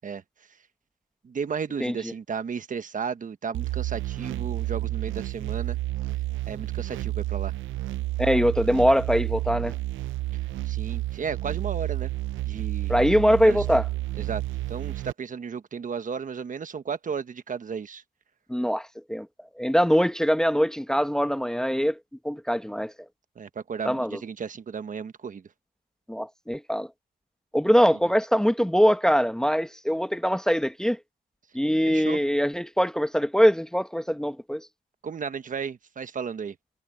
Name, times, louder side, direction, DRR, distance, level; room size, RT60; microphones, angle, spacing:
voice 1, 1.2-5.8 6.5-7.5 10.6-12.1 12.4-13.0 13.5-13.6 14.2-14.4 14.7-18.0 23.4-25.4 31.9-32.2 35.0-36.5, right 6 dB, 40° right, 1.2 m, -34 dB
voice 2, 1.8-2.1 8.2-9.7 12.9-13.9 18.5-19.3 19.6-22.0 22.2-22.9 23.9-24.2 26.1-26.9 27.5-31.0 31.5-34.7, equal, 5° left, 1.2 m, -23 dB
sound 1, 3.5-15.1, right 16 dB, 75° right, 0.6 m, -30 dB
cardioid pair, 90°, 20 cm